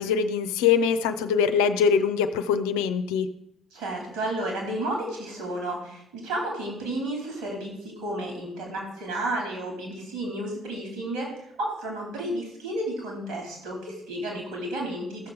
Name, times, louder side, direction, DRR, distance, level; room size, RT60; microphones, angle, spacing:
voice 1, 0.0-3.3, left 6 dB, 70° left, 9 dB, 0.6 m, -23 dB
voice 2, 3.7-15.3, right 1 dB, 70° right, 0 dB, 3.8 m, -32 dB
14.0 x 6.9 x 5.0 m, 0.75 s
figure-of-eight pair, 40°, 0 cm